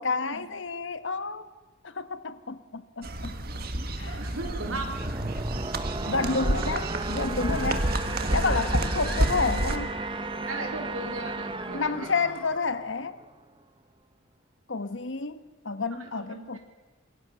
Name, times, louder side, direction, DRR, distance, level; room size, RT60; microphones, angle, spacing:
voice 1, 0.0-1.5 1.8-3.4 4.0-4.2 6.1-7.9 8.3-9.9 11.7-13.2 14.7-16.6, left 4 dB, 65° left, 1.2 m, -30 dB
sound 1, 3.0-9.8, right 1 dB, 45° right, 1.7 m, -29 dB
sound 2, 3.9-13.4, right 3 dB, 25° right, 0.9 m, -35 dB
voice 2, 4.2-5.1 8.4-8.6 10.5-12.1 15.9-16.6, right 2 dB, 85° right, 4.1 m, -37 dB
Screaming / Screech, 7.4-10.6 11.6-12.7, left 1 dB, 5° left, 3.1 m, -43 dB
26.5 x 22.5 x 6.8 m
head